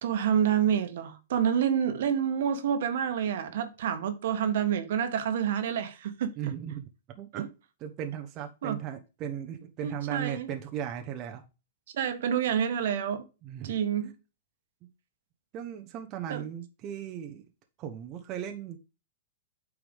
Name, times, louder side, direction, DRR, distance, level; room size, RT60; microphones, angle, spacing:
voice 1, 0.0-6.3 7.4-7.5 8.6-8.8 9.8-10.5 11.9-13.3 13.6-14.1 16.3-16.4, right 8 dB, 65° right, 1.4 m, -28 dB
voice 2, 6.4-6.9 7.1-7.5 7.8-11.4 13.4-14.1 14.8-14.9 15.5-17.4 17.8-18.8, right 10 dB, 30° right, 1.0 m, -37 dB
8.9 x 4.8 x 3.5 m
hypercardioid pair, 145°, 0 cm